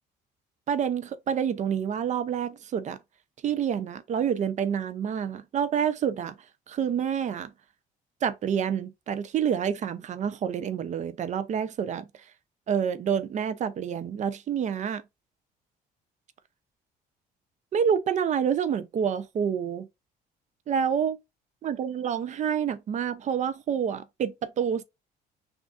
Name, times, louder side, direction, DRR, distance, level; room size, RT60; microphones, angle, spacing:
voice 1, 0.7-3.0 3.4-6.3 6.7-7.5 8.2-12.1 12.7-15.0 17.7-19.9 20.7-21.2 21.6-24.8, right 8 dB, 45° right, 0.5 m, -28 dB
6.0 x 2.5 x 2.4 m
cardioid pair, 110°, 17 cm